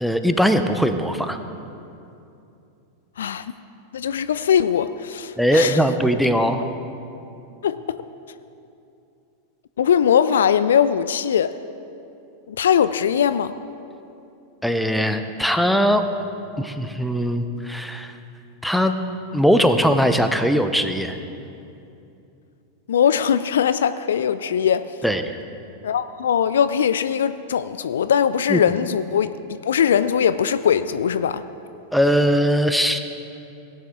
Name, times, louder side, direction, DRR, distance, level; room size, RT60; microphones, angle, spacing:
voice 1, 0.0-1.4 5.4-6.6 14.6-16.0 16.6-18.1 18.6-18.9 19.3-21.2 25.0-25.4 28.5-28.6 31.9-33.0, equal, ahead, 8 dB, 0.7 m, -20 dB
voice 2, 3.9-5.8 7.6-8.0 9.8-11.5 12.5-13.5 22.9-24.9 25.8-29.3 29.6-31.4, left 8 dB, 65° left, 13 dB, 0.3 m, -20 dB
17.0 x 9.2 x 3.7 m, 2.7 s
figure-of-eight pair, 90°, 0 cm